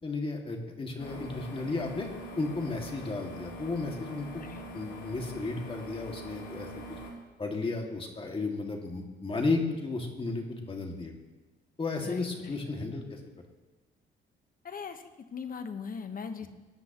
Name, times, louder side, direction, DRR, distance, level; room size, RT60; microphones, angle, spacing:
voice 1, 0.0-2.1 2.4-4.4 4.7-6.7 7.4-11.1 11.8-13.2 16.4-16.5, left 3 dB, 25° left, 1 dB, 2.2 m, -33 dB
sound 1, 1.0-7.1, right 1 dB, 90° left, 2.6 m, -43 dB
voice 2, 4.4-4.7 12.0-13.0 14.6-16.5, left 6 dB, 45° left, 8 dB, 1.2 m, -40 dB
20.0 x 9.7 x 3.1 m, 1.2 s
cardioid pair, 90°, 20 cm